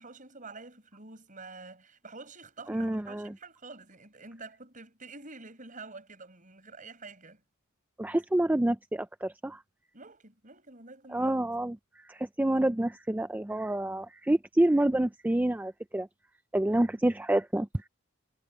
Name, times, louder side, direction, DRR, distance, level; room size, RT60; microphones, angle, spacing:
voice 1, 0.0-7.4 9.9-11.4, right 3 dB, 40° right, 7.5 m, -48 dB
voice 2, 2.7-3.3 8.0-9.6 11.1-16.1 16.5-17.9, right 1 dB, 10° right, 0.3 m, -28 dB
head